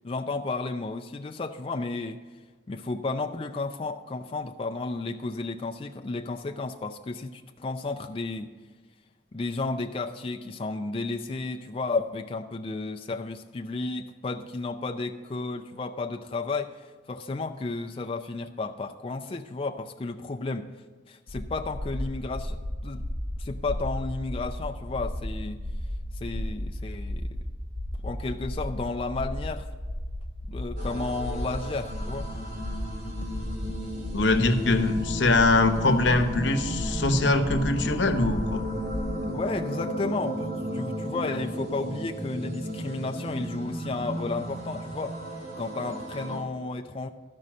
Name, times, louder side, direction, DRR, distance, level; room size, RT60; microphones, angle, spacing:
voice 1, 0.0-2.2 2.7-8.5 9.3-20.7 21.1-23.1 23.4-25.6 26.1-27.3 28.0-29.7 30.5-32.3 39.2-45.2 45.6-47.1, left 3 dB, 30° left, 4 dB, 0.4 m, -32 dB
sound 1, 21.3-39.1, left 1 dB, 30° right, 2.3 m, -35 dB
sound 2, 30.8-46.4, equal, 55° right, 2.4 m, -35 dB
voice 2, 34.1-38.6, left 2 dB, 80° left, 8 dB, 0.9 m, -23 dB
12.5 x 5.4 x 7.3 m, 1.4 s
head